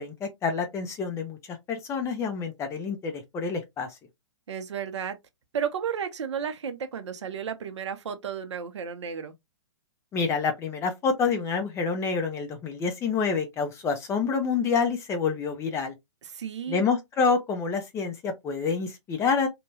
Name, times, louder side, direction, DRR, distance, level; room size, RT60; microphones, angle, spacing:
voice 1, 0.0-3.9 10.1-15.9 16.7-19.5, left 5 dB, 15° left, 0.6 m, -27 dB
voice 2, 4.5-5.2 5.5-9.3 16.2-16.8, right 7 dB, 65° right, 0.6 m, -33 dB
2.8 x 2.2 x 2.7 m
figure-of-eight pair, 120°, 16 cm